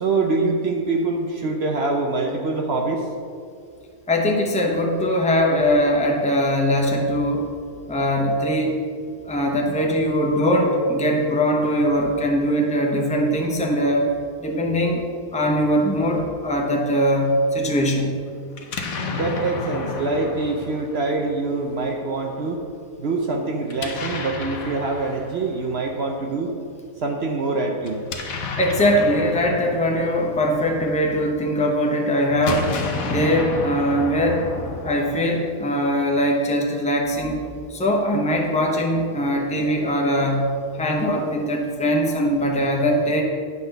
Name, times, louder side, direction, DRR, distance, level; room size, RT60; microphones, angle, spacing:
voice 1, 0.0-3.0 19.1-22.6 23.0-26.5 27.0-28.0, right 3 dB, 60° right, 2 dB, 0.7 m, -24 dB
voice 2, 4.1-7.5 7.9-8.8 9.2-14.1 14.4-15.0 15.3-18.2 28.6-32.7 33.0-34.4 34.8-37.4 37.7-40.5 40.8-43.2, equal, 5° left, 0 dB, 0.6 m, -21 dB
Explosion, 18.5-21.6 23.7-25.9 27.8-31.2 32.3-35.7, left 4 dB, 65° left, 1.2 m, -31 dB
9.6 x 4.0 x 6.6 m, 2.3 s
omnidirectional pair, 1.7 m